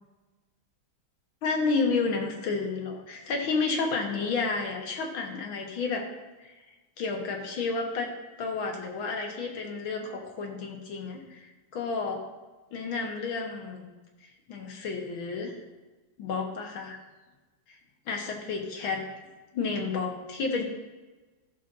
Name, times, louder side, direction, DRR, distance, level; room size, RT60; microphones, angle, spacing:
voice 1, 1.4-6.1 6.4-6.5 7.0-12.2 12.7-13.8 14.2-15.5 16.2-17.0 18.1-19.1 19.5-20.6, left 4 dB, 75° left, 2 dB, 2.0 m, -31 dB
14.0 x 6.8 x 2.7 m, 1.2 s
omnidirectional pair, 2.3 m